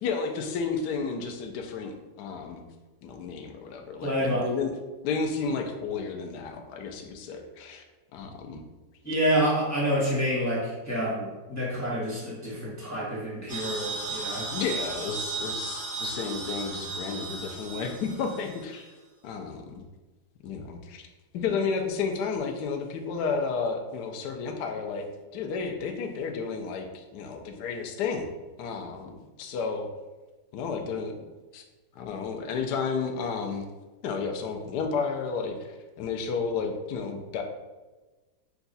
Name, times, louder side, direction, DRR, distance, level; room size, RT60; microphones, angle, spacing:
voice 1, 0.0-2.6 3.0-4.7 5.0-7.8 8.1-8.6 14.5-18.9 19.2-19.8 20.4-21.0 21.3-25.1 25.3-28.3 28.6-29.9 30.5-31.1 31.5-31.6 32.0-33.7 34.0-37.4, left 5 dB, 70° left, 3 dB, 1.1 m, -32 dB
voice 2, 4.0-4.5 9.0-14.5, equal, 10° left, -7 dB, 0.9 m, -28 dB
sound 1, 13.5-18.8, right 3 dB, 50° right, 1.0 m, -35 dB
5.7 x 2.3 x 4.0 m, 1.2 s
omnidirectional pair, 2.0 m